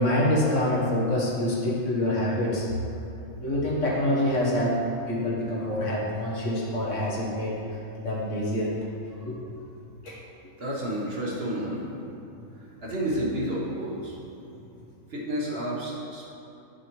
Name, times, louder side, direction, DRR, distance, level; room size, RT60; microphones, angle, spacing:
voice 1, 0.0-2.7 3.4-7.6 8.0-8.8 9.3-9.4 10.0-10.2, left 1 dB, 60° left, -4 dB, 1.5 m, -26 dB
voice 2, 10.6-11.9 12.8-14.2 15.1-16.3, right 1 dB, 50° right, -4 dB, 1.3 m, -30 dB
8.6 x 6.8 x 3.0 m, 2.8 s
omnidirectional pair, 1.5 m